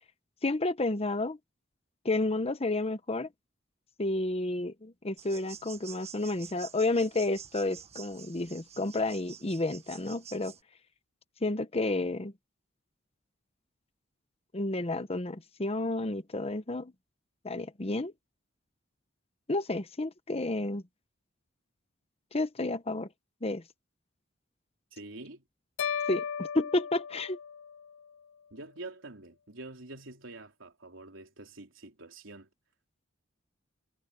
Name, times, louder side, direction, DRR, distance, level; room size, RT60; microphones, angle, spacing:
voice 1, 0.4-1.4 2.0-3.3 4.0-10.5 11.4-12.3 14.5-16.9 17.4-18.1 19.5-20.8 22.3-23.1 23.4-23.6 26.1-27.4, left 2 dB, 30° left, 1.0 m, -31 dB
sound 1, 5.2-10.6, right 8 dB, 35° right, 1.3 m, -49 dB
voice 2, 24.9-25.4 28.5-32.5, right 2 dB, 85° right, 3.4 m, -46 dB
sound 2, 25.8-28.1, left 7 dB, 80° left, 0.4 m, -36 dB
head